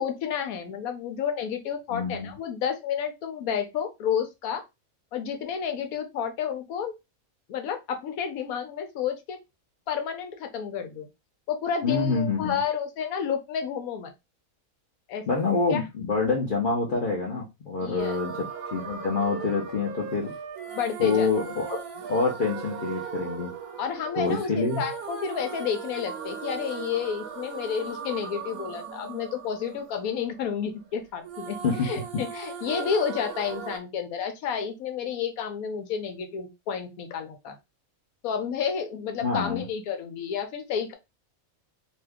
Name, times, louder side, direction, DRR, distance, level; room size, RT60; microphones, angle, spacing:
voice 1, 0.0-4.6 5.1-6.9 7.5-9.4 9.9-11.1 11.5-14.1 15.1-15.2 15.7-15.8 17.8-18.2 20.7-21.3 23.8-37.6 38.2-40.9, left 7 dB, 85° left, 6 dB, 1.1 m, -30 dB
voice 2, 1.9-2.3 11.8-12.6 15.3-18.3 18.7-20.3 21.0-21.8 22.1-23.5 24.1-24.9 31.6-31.9 39.2-39.6, left 4 dB, 45° left, -3 dB, 0.7 m, -26 dB
sound 1, 18.0-30.9 31.2-33.8, right 7 dB, 90° right, 1.1 m, -39 dB
sound 2, 18.4-24.2, right 6 dB, 55° right, 0.7 m, -41 dB
2.7 x 2.2 x 3.4 m, 0.23 s
omnidirectional pair, 1.5 m